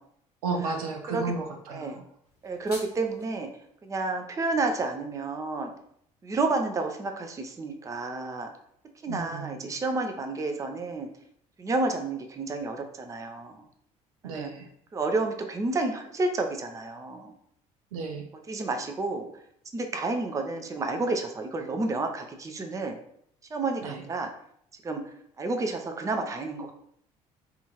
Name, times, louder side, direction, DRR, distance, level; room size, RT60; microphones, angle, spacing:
voice 1, 0.4-2.0 9.1-9.7 14.2-14.7 17.9-18.3 23.8-24.0, right 4 dB, 70° right, 3 dB, 0.5 m, -33 dB
voice 2, 1.7-2.0 2.4-3.5 3.8-5.7 6.2-8.5 9.0-11.1 11.6-13.6 14.2-14.5 14.9-17.3 18.5-19.3 19.7-23.0 23.5-24.3 24.8-25.0 25.4-26.7, right 3 dB, 15° right, 5 dB, 0.5 m, -30 dB
sound 1, 2.2-3.2, left 1 dB, 90° left, 0.8 m, -45 dB
3.4 x 2.5 x 2.9 m, 0.69 s
figure-of-eight pair, 55°, 19 cm